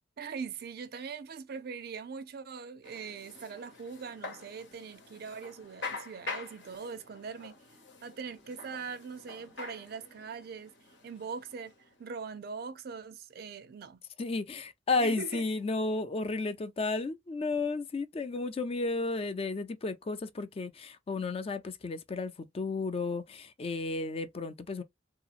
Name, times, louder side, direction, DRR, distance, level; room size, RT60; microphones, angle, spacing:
voice 1, 0.2-7.6 8.0-10.7 11.0-11.7 12.0-14.0 15.0-15.4, right 5 dB, 60° right, 0.4 m, -41 dB
sound 1, 2.8-12.2, left 3 dB, 85° left, 1.1 m, -46 dB
voice 2, 14.2-24.8, left 3 dB, 30° left, 0.4 m, -33 dB
2.8 x 2.8 x 2.4 m
head